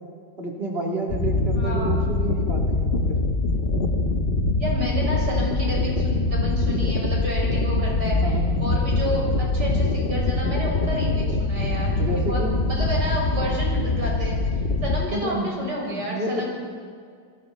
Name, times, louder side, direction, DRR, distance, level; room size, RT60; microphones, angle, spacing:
voice 1, 0.4-3.2 8.2-8.6 12.0-12.6 15.1-15.5 15.9-16.5, right 2 dB, 35° right, -2 dB, 3.7 m, -30 dB
sound 1, 1.1-15.0, left 2 dB, 35° left, 1.3 m, -23 dB
voice 2, 1.5-2.1 4.6-14.4 14.8-16.5, equal, 70° right, -3 dB, 7.0 m, -30 dB
29.0 x 21.0 x 4.3 m, 2.1 s
omnidirectional pair, 1.9 m